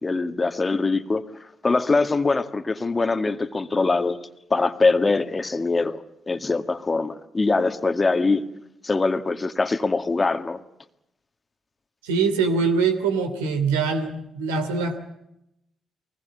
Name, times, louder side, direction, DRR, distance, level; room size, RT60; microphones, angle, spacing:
voice 1, 0.0-1.2 1.6-4.2 4.5-8.5 8.8-10.6, left 3 dB, 30° left, 10 dB, 1.8 m, -23 dB
voice 2, 12.0-15.0, right 5 dB, 85° right, 6 dB, 2.9 m, -23 dB
24.0 x 20.0 x 8.4 m, 0.82 s
hypercardioid pair, 50°, 0 cm